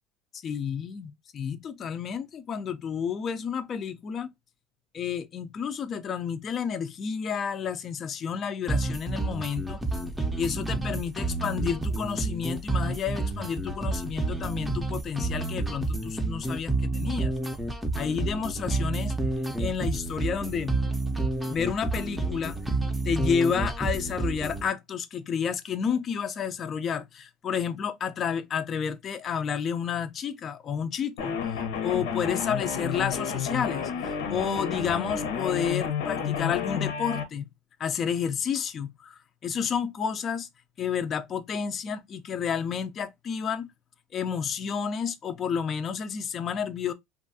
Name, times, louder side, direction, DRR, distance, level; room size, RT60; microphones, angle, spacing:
voice 1, 0.4-4.3 4.9-9.8 10.4-17.4 18.0-19.1 19.6-20.7 21.5-22.6 23.0-31.4 31.8-37.5 37.8-40.5 40.8-43.7 44.1-46.9, left 7 dB, 35° left, 0.4 m, -30 dB
sound 1, 8.7-24.7, right 2 dB, 5° right, 0.6 m, -30 dB
sound 2, 31.2-37.2, left 6 dB, 85° left, 0.8 m, -30 dB
2.7 x 2.3 x 2.6 m
supercardioid pair, 125°, 0 cm